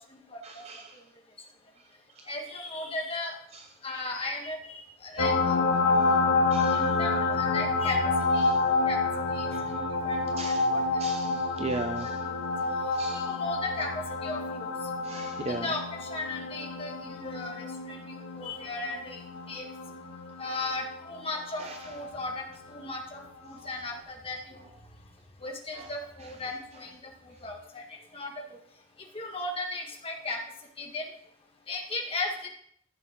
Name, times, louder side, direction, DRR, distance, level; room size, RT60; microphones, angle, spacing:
voice 1, 0.4-1.0 2.2-2.3 3.5-3.6 6.0-6.1 6.5-6.9 8.4-8.6 9.5-9.8 10.3-10.7 11.0-12.2 12.9-13.4 15.0-15.7 21.6-21.9 25.7-25.9, right 2 dB, 30° right, 4 dB, 0.6 m, -38 dB
voice 2, 2.3-3.3 3.8-5.6 6.7-8.0 8.3-8.5 8.9-9.0 9.3-9.5 10.0-11.4 11.8-12.1 12.4-12.5 13.1-14.7 15.5-19.2 19.5-19.6 20.4-24.7 25.4-27.0 27.2-27.8 28.1-28.4 29.1-30.4 30.8-31.1 31.7-32.5, left 2 dB, 25° left, 1 dB, 1.7 m, -36 dB
sound 1, 5.2-22.4 23.9-24.0, left 3 dB, 75° left, 1.9 m, -29 dB
14.0 x 6.9 x 3.7 m, 0.66 s
head